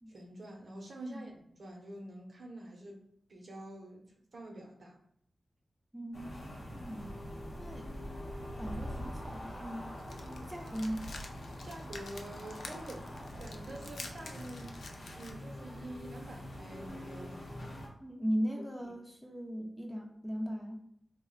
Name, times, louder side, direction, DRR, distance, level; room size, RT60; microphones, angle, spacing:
voice 1, 0.1-5.0 11.6-14.8 15.1-17.5 18.8-18.9, right 1 dB, 55° right, 1 dB, 0.6 m, -47 dB
voice 2, 5.9-7.1 7.6-7.9 8.6-9.9 10.2-11.1 18.0-20.8, equal, ahead, 1 dB, 0.4 m, -38 dB
sound 1, 6.1-17.9, equal, 55° left, 0.7 m, -44 dB
sound 2, 10.0-15.3, left 3 dB, 80° left, 0.3 m, -49 dB
2.4 x 2.0 x 3.7 m, 0.72 s
wide cardioid pair, 130°, 0 cm